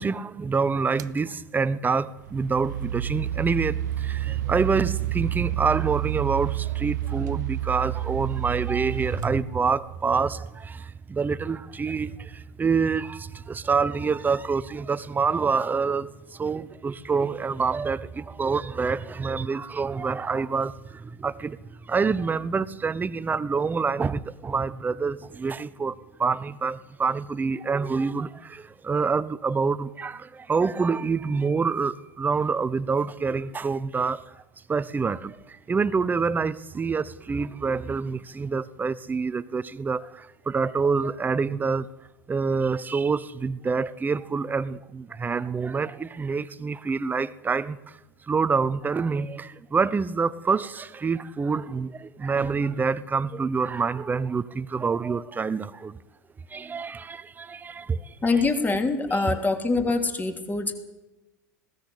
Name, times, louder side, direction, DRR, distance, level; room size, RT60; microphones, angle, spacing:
voice 1, 0.0-34.2 34.7-41.9 42.3-48.0 48.3-56.0 56.5-58.1, right 5 dB, 20° right, 0.9 m, -27 dB
sound 1, 1.0-1.2 2.1-10.1, right 13 dB, 70° right, 0.6 m, -30 dB
voice 2, 58.2-60.7, left 3 dB, 15° left, 3.0 m, -24 dB
20.5 x 17.0 x 8.6 m
hypercardioid pair, 85°, 10 cm